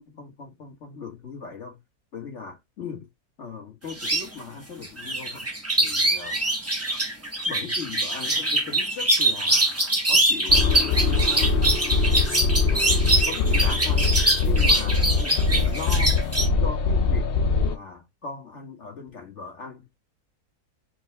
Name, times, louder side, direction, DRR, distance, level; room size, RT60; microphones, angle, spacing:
voice 1, 0.0-1.8 2.1-3.1 3.4-5.5 5.8-6.4 7.5-11.6 12.7-16.1 16.6-17.3 17.6-19.9, left 5 dB, 50° left, 1.5 m, -39 dB
sound 1, 3.9-4.2 4.8-16.5, right 1 dB, 15° right, 0.6 m, -23 dB
sound 2, 10.5-17.7, left 4 dB, 75° left, 0.5 m, -22 dB
4.5 x 2.3 x 2.9 m
omnidirectional pair, 1.7 m